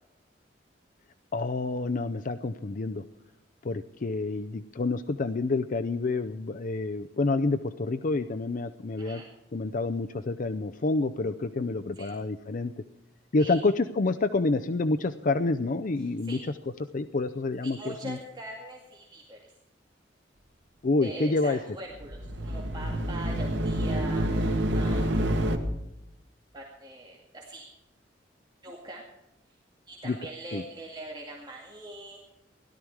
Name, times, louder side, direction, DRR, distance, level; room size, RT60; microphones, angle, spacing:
voice 1, 1.3-3.0 3.6-9.2 9.5-12.7 13.3-16.4 16.9-18.2 20.8-21.6 30.0-30.2 30.5-30.6, left 3 dB, 50° left, 9 dB, 0.5 m, -28 dB
voice 2, 16.0-16.4 17.6-19.5 21.0-25.5 26.5-27.7 28.6-29.0 29.9-32.2, right 2 dB, 25° right, -2 dB, 2.2 m, -42 dB
sound 1, 21.9-25.6, right 1 dB, 90° right, 1.8 m, -28 dB
17.0 x 12.5 x 4.8 m, 0.94 s
head